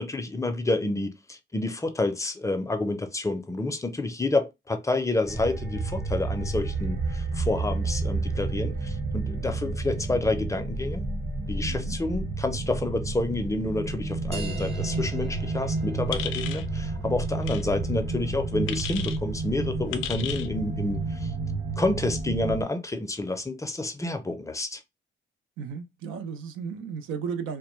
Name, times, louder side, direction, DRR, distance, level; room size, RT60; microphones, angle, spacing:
voice 1, 0.0-11.0 11.5-21.3 21.8-24.8, left 2 dB, 15° left, 0.4 m, -29 dB
sound 1, 5.3-22.6, right 3 dB, 45° right, 1.0 m, -30 dB
voice 2, 11.6-11.9 25.6-27.6, right 6 dB, 90° right, 0.5 m, -34 dB
sound 2, 14.3-19.4, right 4 dB, 30° right, 0.6 m, -44 dB
sound 3, 16.1-16.7 17.4-17.6 18.7-19.2 19.9-20.5, left 10 dB, 85° left, 0.4 m, -34 dB
2.2 x 2.1 x 3.0 m
cardioid pair, 90°, 20 cm